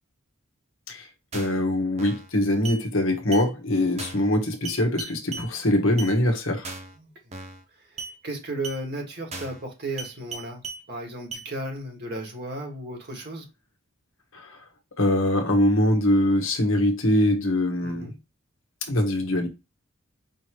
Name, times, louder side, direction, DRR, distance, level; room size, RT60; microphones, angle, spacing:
voice 1, 1.3-6.7 14.3-14.6 15.0-18.1 18.9-19.5, left 1 dB, 65° left, 1.3 m, -23 dB
sound 1, 1.3-1.6 2.0-2.3 2.7-2.8 3.3-3.5 4.0-4.3 4.7-5.5 6.0-6.1 6.6-7.0 7.3-7.6 8.0-8.1 8.6-8.8 9.3-9.6 10.0-10.8 11.3-11.5, right 4 dB, 30° right, 0.7 m, -37 dB
voice 2, 8.2-10.6 10.9-13.5 17.8-18.1, right 1 dB, 45° right, 1.7 m, -34 dB
5.4 x 3.1 x 3.0 m
head